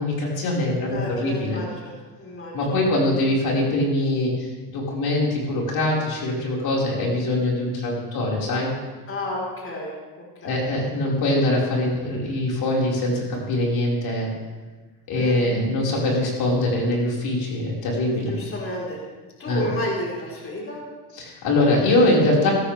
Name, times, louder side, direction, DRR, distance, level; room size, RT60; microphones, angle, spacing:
voice 1, 0.0-1.6 2.5-8.7 10.4-14.3 15.1-18.3 19.5-19.7 21.1-22.5, left 1 dB, 50° left, -3 dB, 5.5 m, -23 dB
voice 2, 0.9-1.9 2.2-2.8 9.1-9.9 10.4-10.6 15.1-15.4 18.1-19.0 19.4-20.8, left 1 dB, 25° left, -3 dB, 4.5 m, -31 dB
17.0 x 13.0 x 3.6 m, 1.3 s
supercardioid pair, 110°, 47 cm